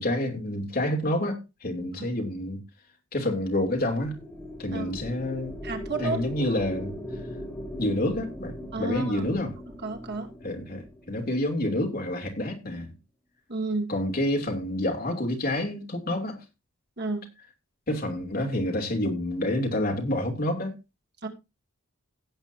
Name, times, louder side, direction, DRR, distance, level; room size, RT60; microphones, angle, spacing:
voice 1, 0.0-2.6 3.1-4.2 4.6-5.6 6.0-6.9 7.8-9.5 10.4-12.9 13.9-16.4 17.9-20.7, left 1 dB, 40° left, 3.0 m, -28 dB
sound 1, 3.5-11.9, left 1 dB, 10° left, 3.3 m, -40 dB
voice 2, 5.6-6.2 8.7-9.3 9.8-10.3 13.5-13.9 17.0-17.3 21.2-21.3, right 3 dB, 50° right, 2.4 m, -31 dB
17.0 x 8.3 x 2.7 m
head